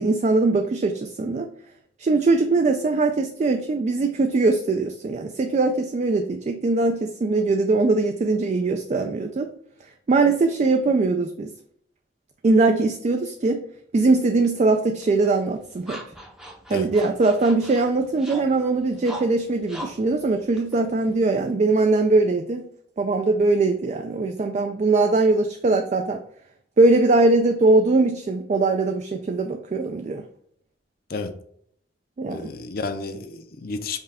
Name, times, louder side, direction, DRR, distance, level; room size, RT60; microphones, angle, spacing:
voice 1, 0.0-1.5 2.0-9.5 10.1-11.5 12.4-13.6 13.9-16.0 16.7-22.6 23.0-26.2 26.8-30.2 32.2-32.5, right 3 dB, 40° right, 0.3 m, -21 dB
sound 1, 15.0-21.5, right 1 dB, 5° right, 0.6 m, -42 dB
voice 2, 32.3-34.0, left 3 dB, 55° left, 0.5 m, -31 dB
5.5 x 2.3 x 3.4 m
head